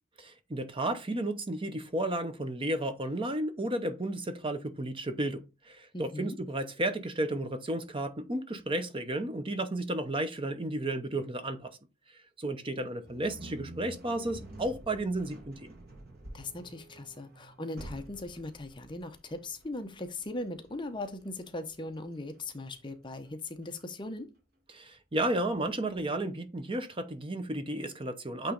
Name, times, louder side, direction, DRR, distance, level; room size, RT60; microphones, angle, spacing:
voice 1, 0.2-11.8 12.4-15.7 24.7-28.5, right 1 dB, 25° right, 0.7 m, -33 dB
voice 2, 5.9-6.4 16.3-24.3, left 2 dB, 20° left, 0.7 m, -39 dB
sound 1, 13.0-24.2, right 1 dB, 45° right, 1.6 m, -50 dB
8.6 x 3.1 x 3.8 m
head